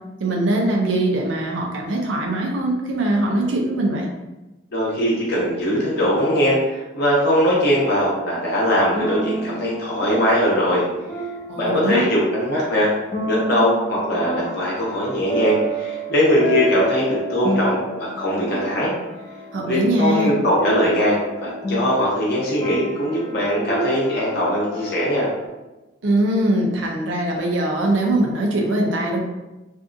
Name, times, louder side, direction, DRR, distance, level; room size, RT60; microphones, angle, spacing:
voice 1, 0.2-4.1 11.5-12.1 19.5-20.3 26.0-29.2, right 1 dB, 80° right, 0 dB, 0.5 m, -21 dB
voice 2, 4.7-10.8 11.5-12.9 13.2-18.9 19.6-25.3, equal, 55° left, -5 dB, 0.9 m, -20 dB
sound 1, 7.4-25.5, equal, 25° left, 0.5 m, -31 dB
2.6 x 2.4 x 2.5 m, 1.1 s
head